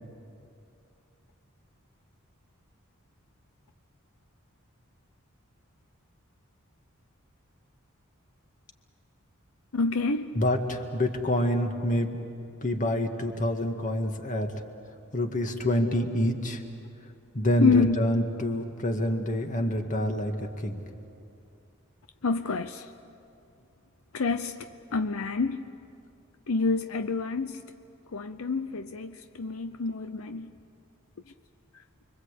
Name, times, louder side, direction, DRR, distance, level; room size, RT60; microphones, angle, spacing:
voice 1, 9.7-10.3 17.6-18.0 22.2-22.9 24.1-25.7 26.5-27.6 28.1-30.5, left 4 dB, 80° left, 0.7 m, -28 dB
voice 2, 10.4-12.2 12.6-14.5 15.1-16.6 17.3-20.8, left 1 dB, 35° left, 2.0 m, -27 dB
29.5 x 24.0 x 8.4 m
head